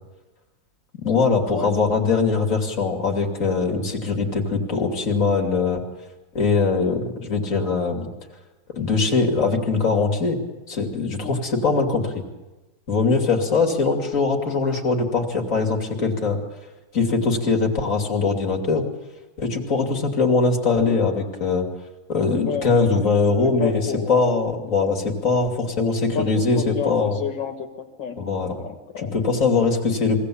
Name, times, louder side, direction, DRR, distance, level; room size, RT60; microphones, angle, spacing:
voice 1, 1.0-5.8 6.3-8.1 8.8-10.4 10.7-12.2 12.9-16.4 16.9-18.8 19.4-21.7 22.1-23.8 24.1-27.2 28.2-28.6 29.0-30.2, left 4 dB, 45° left, 2 dB, 2.9 m, -21 dB
voice 2, 22.5-23.1 23.6-24.1 26.1-28.2 28.6-29.1, left 6 dB, 85° left, 4 dB, 2.2 m, -30 dB
23.0 x 16.5 x 8.5 m, 1.1 s
omnidirectional pair, 1.9 m